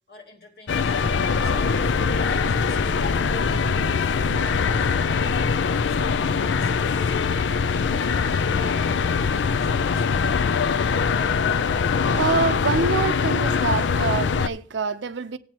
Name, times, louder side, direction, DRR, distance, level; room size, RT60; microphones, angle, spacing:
voice 1, 0.1-1.1 7.7-10.8, left 2 dB, 60° left, 2.7 m, -46 dB
sound 1, 0.7-14.5, left 5 dB, 85° left, 0.4 m, -22 dB
sound 2, 0.7-13.3, equal, 15° left, 1.1 m, -37 dB
Acoustic guitar / Strum, 1.9-6.0, equal, 40° right, 2.4 m, -49 dB
voice 2, 12.1-15.4, right 4 dB, 85° right, 0.6 m, -25 dB
16.0 x 8.5 x 2.9 m
head